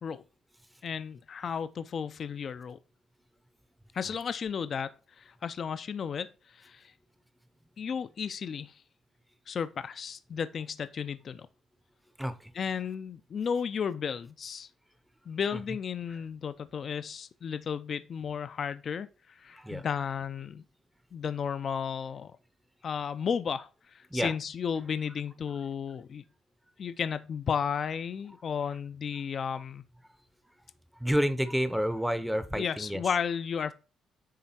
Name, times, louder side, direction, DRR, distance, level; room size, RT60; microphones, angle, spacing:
voice 1, 0.8-2.8 3.9-6.9 7.8-8.8 9.5-11.5 12.5-14.7 15.3-20.6 21.1-22.4 22.8-26.2 26.8-29.8 32.5-33.7, left 7 dB, 50° left, 0.4 m, -34 dB
voice 2, 12.2-12.5 15.5-15.6 19.5-19.8 24.1-24.3 31.0-33.0, equal, 5° right, 0.7 m, -29 dB
8.5 x 3.2 x 4.2 m
cardioid pair, 90°, 0 cm